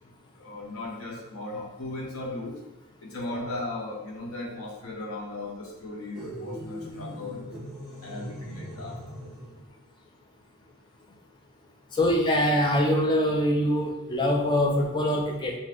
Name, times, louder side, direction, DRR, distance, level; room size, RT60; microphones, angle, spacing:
voice 1, 0.4-2.6 3.0-7.5 8.0-9.0, left 2 dB, 70° left, -2 dB, 0.8 m, -37 dB
sound 1, 6.1-9.6, right 1 dB, ahead, 0.8 m, -40 dB
voice 2, 11.9-15.6, equal, 20° left, 1 dB, 0.3 m, -24 dB
2.6 x 2.4 x 3.3 m, 0.99 s
head